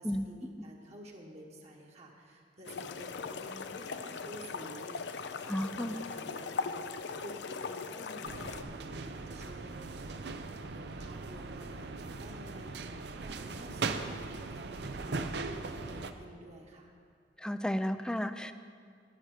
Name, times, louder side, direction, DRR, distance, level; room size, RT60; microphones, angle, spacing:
voice 1, 0.0-6.9 7.2-10.1 10.7-13.0 13.2-16.9, right 1 dB, 40° right, -1 dB, 1.3 m, -50 dB
sound 1, 2.7-8.6, left 5 dB, 75° left, 0.5 m, -39 dB
voice 2, 5.5-6.0 17.4-18.5, equal, 5° left, 10 dB, 0.3 m, -33 dB
sound 2, 8.2-16.1, right 3 dB, 70° right, 0.6 m, -39 dB
10.5 x 9.9 x 4.9 m, 2.2 s
head